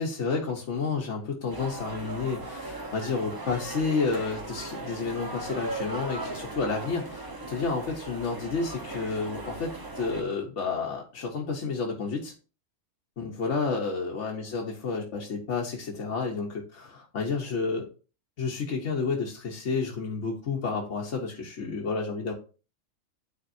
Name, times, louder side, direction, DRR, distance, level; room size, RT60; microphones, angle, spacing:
voice 1, 0.0-12.3 13.2-17.9 18.4-22.3, left 4 dB, 65° left, -1 dB, 1.2 m, -30 dB
sound 1, 1.5-10.2, right 2 dB, 20° right, 0.7 m, -38 dB
9.3 x 4.0 x 2.6 m, 0.36 s
omnidirectional pair, 1.4 m